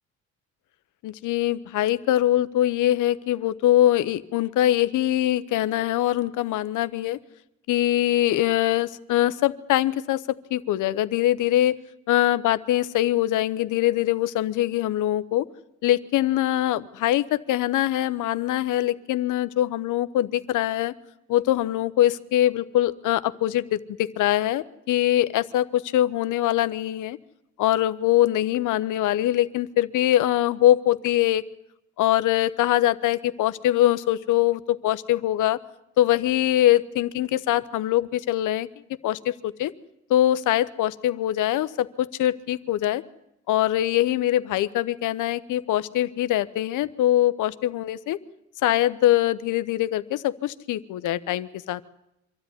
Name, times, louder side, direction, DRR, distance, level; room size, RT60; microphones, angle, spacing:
voice 1, 1.0-7.2 7.7-11.8 12.1-15.5 15.8-20.9 21.3-27.2 27.6-31.4 32.0-35.6 36.0-38.7 39.0-39.7 40.1-43.0 43.5-48.2 48.6-51.9, left 13 dB, 85° left, 14 dB, 0.9 m, -23 dB
25.0 x 13.0 x 9.8 m, 0.84 s
cardioid pair, 90°, 30 cm